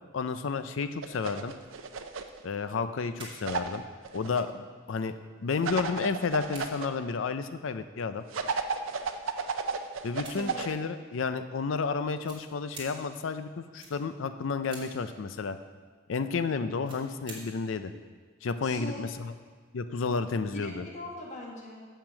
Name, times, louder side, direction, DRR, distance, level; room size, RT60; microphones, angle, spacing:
voice 1, 0.1-1.5 2.4-3.8 4.1-5.1 5.4-8.2 10.0-15.6 16.1-17.9 18.4-19.3 19.7-20.8, left 4 dB, 75° left, 11 dB, 0.5 m, -31 dB
sound 1, 1.0-2.4 3.5-4.4 5.6-6.9 8.3-10.7, right 5 dB, 85° right, 0.6 m, -33 dB
sound 2, 1.6-2.0 2.3-3.4 3.8-3.9 4.5-4.6 4.9-6.0 6.3-7.4 8.1-8.2 8.8-9.4 10.0-10.8 11.7-11.8 12.2-12.9 13.8-13.9 14.7-14.8 16.7-17.4 17.6-17.7, right 2 dB, 25° right, 2.2 m, -48 dB
voice 2, 10.2-10.8 18.6-19.0 20.5-21.8, left 1 dB, 40° left, -3 dB, 1.8 m, -41 dB
6.6 x 6.0 x 7.5 m, 1.5 s
head